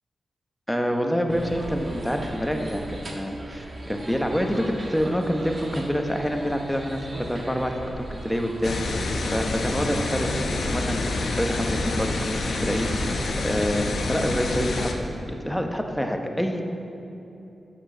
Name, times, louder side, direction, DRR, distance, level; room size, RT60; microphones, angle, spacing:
voice 1, 0.7-8.8 9.3-12.2 12.5-13.2 13.4-16.6, equal, 5° left, 3 dB, 0.9 m, -27 dB
sound 1, 1.3-13.3, right 1 dB, 50° right, 1.5 m, -38 dB
sound 2, 8.6-14.9, left 3 dB, 75° left, 0.8 m, -27 dB
8.2 x 6.2 x 6.1 m, 2.9 s
cardioid pair, 60°, 0 cm